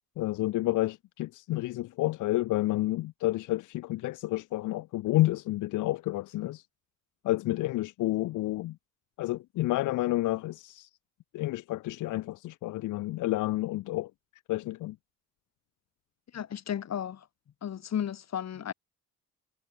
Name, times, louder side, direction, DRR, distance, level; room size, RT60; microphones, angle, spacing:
voice 1, 0.2-6.6 7.2-8.8 9.2-10.9 11.3-14.1 14.5-15.0, left 17 dB, 90° left, 1.1 m, -30 dB
voice 2, 16.3-17.3 17.6-18.7, left 9 dB, 60° left, 6.0 m, -34 dB
cardioid pair, 90°, 30 cm